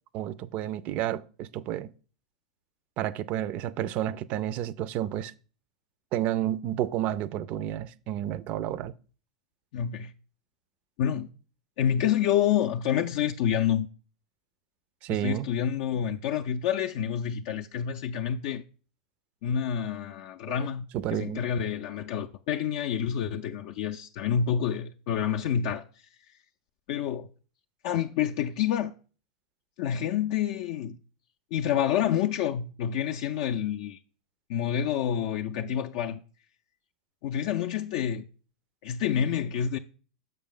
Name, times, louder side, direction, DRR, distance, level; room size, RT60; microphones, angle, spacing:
voice 1, 0.1-1.9 3.0-5.3 6.1-8.9 15.0-15.5 20.5-20.7 20.9-21.4, right 12 dB, 45° right, 0.4 m, -31 dB
voice 2, 9.7-10.1 11.0-11.3 11.8-13.9 15.1-18.6 19.4-20.9 21.1-26.1 26.9-27.3 27.8-28.9 29.8-31.0 31.5-34.0 34.5-36.2 37.2-38.3 38.8-39.8, left 9 dB, 55° left, 0.3 m, -28 dB
6.6 x 5.2 x 3.7 m
hypercardioid pair, 95°, 3 cm